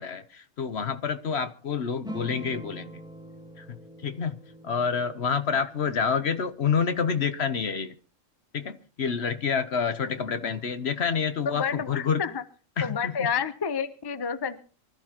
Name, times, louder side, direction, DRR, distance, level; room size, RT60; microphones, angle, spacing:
voice 1, 0.0-2.9 3.6-4.4 4.6-7.9 8.5-12.2 12.8-13.1, left 6 dB, 55° left, 1.1 m, -28 dB
sound 1, 2.0-7.0, equal, 5° right, 1.2 m, -44 dB
voice 2, 11.4-12.4 12.8-14.7, left 6 dB, 20° left, 0.7 m, -30 dB
24.5 x 13.5 x 2.9 m
omnidirectional pair, 1.4 m